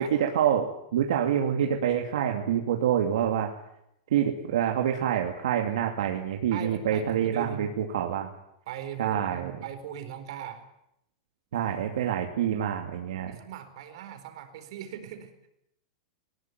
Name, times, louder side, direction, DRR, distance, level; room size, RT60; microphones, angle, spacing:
voice 1, 0.0-3.5 4.1-8.3 9.0-9.5 11.5-13.4, right 9 dB, 80° right, 3 dB, 2.5 m, -26 dB
voice 2, 6.5-7.6 8.7-10.6 13.3-15.5, right 9 dB, 60° right, 9 dB, 4.3 m, -39 dB
20.0 x 19.5 x 9.4 m, 0.80 s
supercardioid pair, 155°, 3 cm